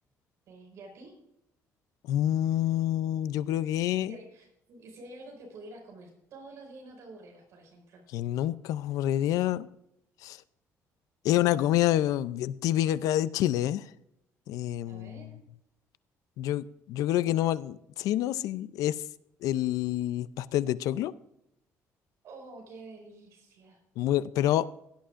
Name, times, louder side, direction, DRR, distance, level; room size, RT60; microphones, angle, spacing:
voice 1, 0.5-1.1 4.1-8.0 14.9-15.4 22.2-23.8, right 2 dB, 60° right, 1 dB, 5.4 m, -48 dB
voice 2, 2.1-4.1 8.1-9.7 10.2-10.4 11.2-13.9 14.5-15.3 16.4-19.0 19.4-21.1 24.0-24.7, left 13 dB, 90° left, 16 dB, 0.5 m, -27 dB
16.5 x 11.5 x 2.5 m, 0.82 s
cardioid pair, 160°, 6 cm